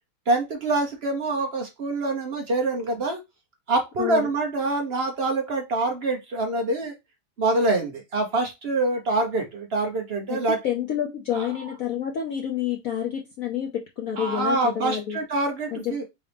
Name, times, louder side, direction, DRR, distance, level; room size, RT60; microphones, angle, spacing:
voice 1, 0.3-3.2 3.7-6.9 7.4-10.6 11.3-11.4 14.2-16.0, right 2 dB, 45° right, 2 dB, 0.8 m, -25 dB
voice 2, 4.0-4.3 10.3-15.2 15.7-16.0, left 9 dB, 75° left, 2 dB, 0.8 m, -29 dB
4.0 x 3.9 x 3.4 m, 0.22 s
omnidirectional pair, 2.4 m